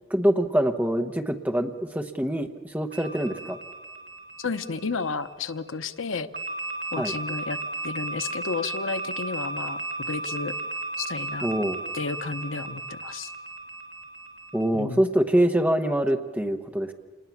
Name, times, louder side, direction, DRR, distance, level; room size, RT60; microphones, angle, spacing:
voice 1, 0.1-3.6 7.0-7.1 11.4-11.8 14.5-16.9, right 1 dB, 10° right, 5 dB, 1.0 m, -24 dB
sound 1, 2.9-5.4 6.3-14.6, right 2 dB, 55° right, 3.7 m, -35 dB
voice 2, 4.4-6.3 6.9-9.8 10.1-10.5 11.0-11.5 11.9-13.3 14.7-15.0, left 4 dB, 90° left, 11 dB, 0.8 m, -32 dB
27.5 x 20.0 x 7.2 m, 1.3 s
head